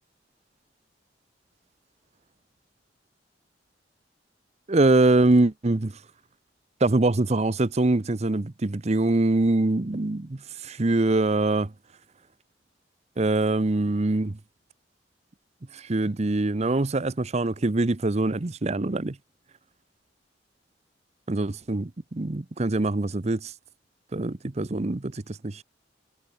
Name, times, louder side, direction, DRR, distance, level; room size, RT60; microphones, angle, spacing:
voice 1, 4.7-5.9 6.8-11.7 13.2-14.4 15.7-19.2 21.3-23.5 24.1-25.6, right 2 dB, 35° right, 0.8 m, -24 dB
head